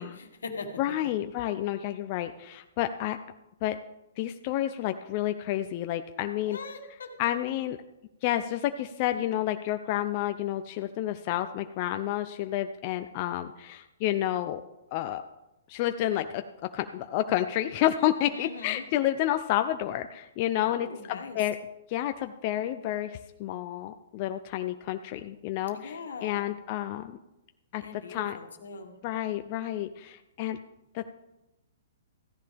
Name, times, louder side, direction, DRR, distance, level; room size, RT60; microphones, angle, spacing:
voice 1, 0.0-1.0 6.5-7.3 18.3-18.8 20.6-21.4 25.7-26.5 27.8-28.9, left 4 dB, 85° left, 4 dB, 1.8 m, -41 dB
voice 2, 0.8-3.2 3.6-3.8 4.2-6.6 7.2-7.8 8.2-14.6 14.9-15.2 15.7-16.4 16.7-21.6 21.9-27.2 27.7-27.8 28.1-28.4 29.0-30.6 30.9-31.1, left 13 dB, 40° left, 8 dB, 0.5 m, -30 dB
15.0 x 10.0 x 3.5 m, 0.93 s
hypercardioid pair, 140°, 0 cm